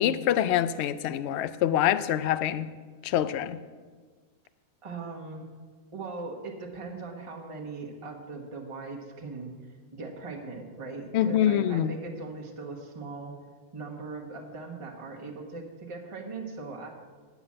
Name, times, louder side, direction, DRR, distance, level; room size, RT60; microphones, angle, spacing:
voice 1, 0.0-2.7 3.0-3.6 11.1-11.9, left 11 dB, 65° left, 14 dB, 0.7 m, -25 dB
voice 2, 4.8-5.5 5.9-9.5 9.9-13.3 13.7-16.9, right 3 dB, 25° right, -2 dB, 1.3 m, -39 dB
9.9 x 6.0 x 8.6 m, 1.5 s
omnidirectional pair, 1.5 m